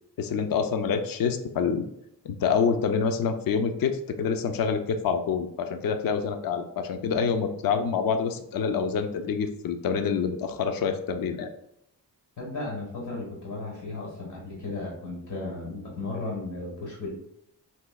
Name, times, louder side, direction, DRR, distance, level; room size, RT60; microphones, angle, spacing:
voice 1, 0.2-1.9 2.2-11.5, left 6 dB, 60° left, 7 dB, 0.5 m, -27 dB
voice 2, 12.4-17.1, left 2 dB, 85° left, -3 dB, 1.5 m, -35 dB
4.2 x 2.7 x 2.3 m, 0.78 s
wide cardioid pair, 80°, 40 cm